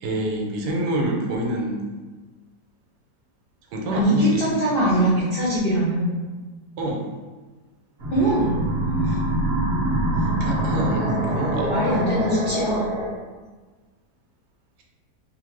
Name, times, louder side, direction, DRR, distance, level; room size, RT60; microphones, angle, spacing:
voice 1, 0.0-1.8 3.7-4.6 6.8-7.0 10.4-11.7, right 1 dB, 80° right, 0 dB, 1.2 m, -26 dB
voice 2, 3.9-6.1 8.1-8.6 9.0-9.2 11.7-12.9, equal, 65° left, -9 dB, 0.5 m, -22 dB
sound 1, 8.0-13.1, right 1 dB, 50° right, 0.7 m, -24 dB
2.8 x 2.1 x 3.1 m, 1.3 s
omnidirectional pair, 1.8 m